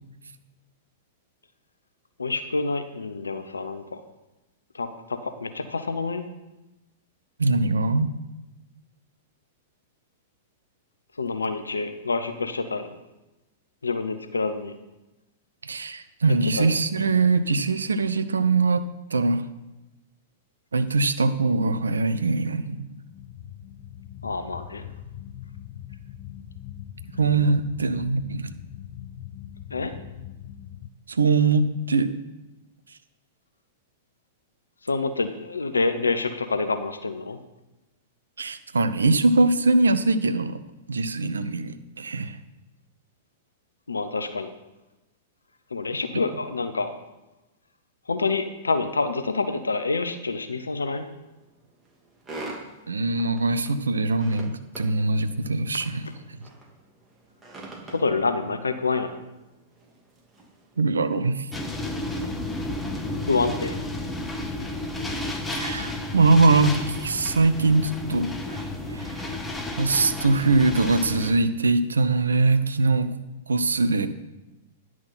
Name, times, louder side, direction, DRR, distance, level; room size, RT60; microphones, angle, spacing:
voice 1, 2.2-4.0 4.7-6.2 11.2-12.9 13.8-14.7 16.6-16.7 24.2-24.9 29.7-29.9 34.8-37.4 43.9-44.5 45.7-46.9 48.1-51.1 57.9-59.1 63.3-63.8, left 3 dB, 85° left, 9 dB, 0.8 m, -27 dB
voice 2, 7.4-8.1 15.6-19.4 20.7-22.8 27.2-28.5 31.1-32.1 38.4-40.6 40.9-42.4 52.9-56.4 60.8-61.5 65.5-68.6 68.9-69.4 69.8-73.1 73.5-74.1, right 3 dB, 85° right, 12 dB, 0.7 m, -22 dB
sound 1, 23.1-30.9, left 11 dB, 45° left, 0.6 m, -41 dB
sound 2, 50.6-64.3, right 2 dB, 15° right, 2.7 m, -47 dB
sound 3, 61.5-71.3, left 2 dB, 10° left, 1.4 m, -32 dB
10.5 x 6.2 x 5.7 m, 1.0 s
hypercardioid pair, 105°, 0 cm